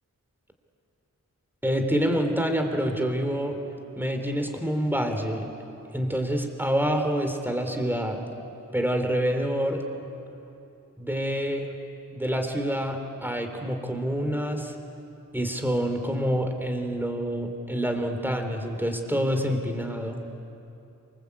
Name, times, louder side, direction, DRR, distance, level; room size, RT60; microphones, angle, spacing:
voice 1, 1.6-3.6 4.0-5.4 5.9-8.2 8.7-9.8 11.0-11.7 12.1-14.8 15.3-20.2, equal, 5° right, 5 dB, 3.6 m, -27 dB
27.0 x 25.5 x 8.5 m, 2.8 s
wide cardioid pair, 45°, 33 cm